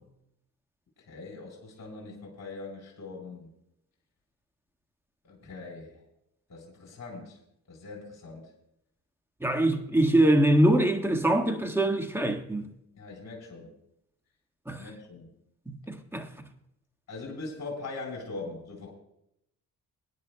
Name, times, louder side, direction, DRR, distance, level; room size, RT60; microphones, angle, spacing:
voice 1, 1.1-3.5 5.2-6.0 6.5-7.4 7.7-8.5 12.9-13.7 14.8-15.3 17.1-18.9, left 3 dB, 50° left, 4.2 m, -41 dB
voice 2, 9.4-12.7 14.7-14.8 15.7-16.3, right 1 dB, 5° right, 1.6 m, -24 dB
23.0 x 10.5 x 2.3 m
cardioid pair, 75°, 36 cm